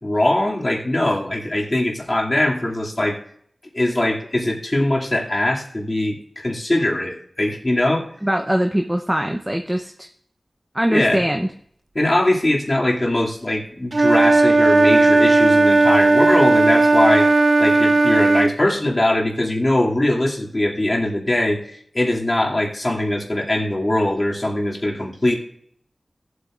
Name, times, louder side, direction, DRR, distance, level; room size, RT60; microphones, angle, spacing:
voice 1, 0.0-3.2 3.7-8.1 10.9-11.2 11.9-17.3 17.6-21.6 21.9-25.4, left 1 dB, 35° left, -3 dB, 2.5 m, -21 dB
voice 2, 8.2-10.1 10.7-11.5, equal, 10° right, 4 dB, 0.7 m, -22 dB
Wind instrument woodwind instrument, 13.9-18.6, right 2 dB, 55° right, 0.3 m, -15 dB
18.0 x 8.2 x 2.5 m, 0.65 s
wide cardioid pair, 70°, 0 cm